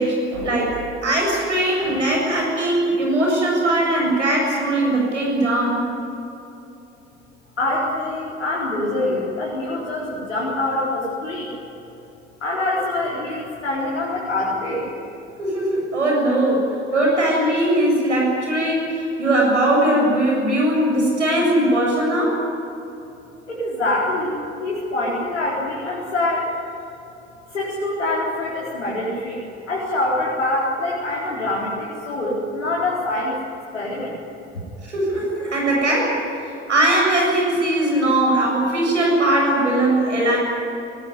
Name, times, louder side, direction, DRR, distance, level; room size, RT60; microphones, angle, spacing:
voice 1, 0.0-5.8 15.4-22.4 34.8-40.4, right 1 dB, 90° right, -1 dB, 7.6 m, -20 dB
voice 2, 7.6-11.5 12.4-14.9 23.5-24.4 24.6-26.5 27.5-29.4 29.7-33.4 33.7-34.2, left 2 dB, 85° left, -6 dB, 4.6 m, -24 dB
22.0 x 19.5 x 9.7 m, 3.0 s
figure-of-eight pair, 65°, 35 cm